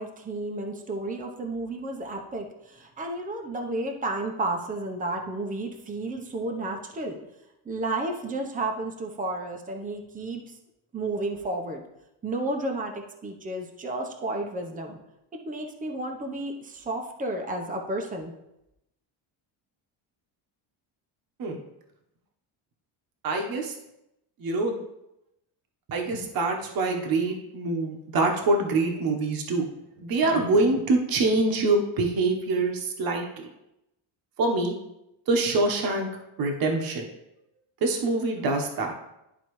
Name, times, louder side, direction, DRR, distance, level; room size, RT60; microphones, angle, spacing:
voice 1, 0.0-7.2 7.7-10.4 10.9-11.8 12.2-15.0 15.4-18.3, right 2 dB, 15° right, 3 dB, 0.8 m, -32 dB
voice 2, 23.2-23.7 24.4-24.8 25.9-29.7 30.0-33.5 34.4-34.7 35.3-36.1 36.4-37.1 37.8-38.9, right 2 dB, 50° right, 2 dB, 1.2 m, -25 dB
11.5 x 4.0 x 3.2 m, 0.87 s
cardioid pair, 120°, 47 cm